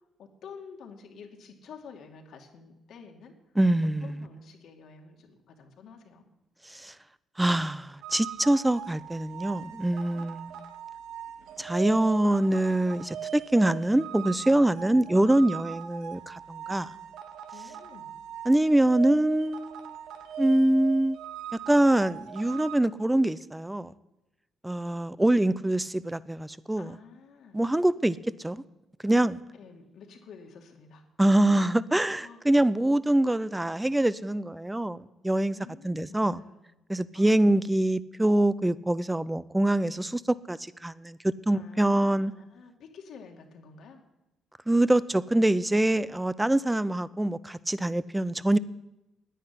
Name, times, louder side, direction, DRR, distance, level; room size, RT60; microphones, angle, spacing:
voice 1, 0.2-3.3 4.0-6.2 14.8-15.1 17.5-18.1 26.8-27.6 29.6-31.0 32.2-32.7 35.5-36.6 37.1-37.6 41.5-44.0, left 5 dB, 70° left, 3 dB, 2.3 m, -49 dB
voice 2, 3.6-4.2 6.7-6.9 7.4-10.6 11.6-16.9 18.5-19.9 20.4-21.2 21.7-23.9 24.6-27.0 27.5-28.2 28.4-28.6 29.0-29.4 31.2-35.6 35.8-36.4 36.9-42.3 44.7-48.6, right 1 dB, 10° right, 18 dB, 0.6 m, -24 dB
sound 1, 8.0-22.8, right 9 dB, 85° right, 1.0 m, -40 dB
10.0 x 9.8 x 9.8 m, 0.95 s
cardioid pair, 90°, 0 cm